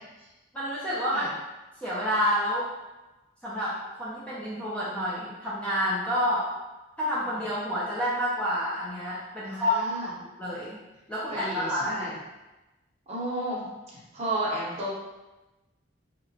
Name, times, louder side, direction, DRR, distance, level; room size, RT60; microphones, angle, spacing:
voice 1, 0.5-1.3 1.8-2.7 3.4-6.5 7.0-10.1 10.4-10.8 11.1-12.0, equal, 5° left, -8 dB, 0.3 m, -29 dB
voice 2, 9.4-10.1 11.3-12.1 13.1-14.9, right 1 dB, 35° right, -6 dB, 0.6 m, -33 dB
2.8 x 2.1 x 2.6 m, 1.1 s
head